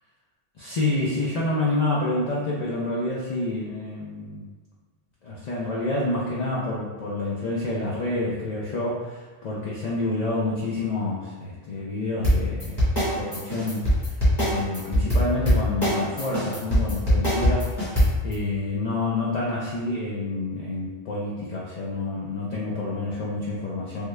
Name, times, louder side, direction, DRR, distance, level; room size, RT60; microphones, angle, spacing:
voice 1, 0.6-4.5 5.2-17.7 18.2-24.0, left 2 dB, 60° left, -5 dB, 0.4 m, -28 dB
sound 1, 12.2-18.3, equal, 20° left, 1.2 m, -21 dB
3.5 x 2.2 x 3.1 m, 1.4 s
omnidirectional pair, 1.2 m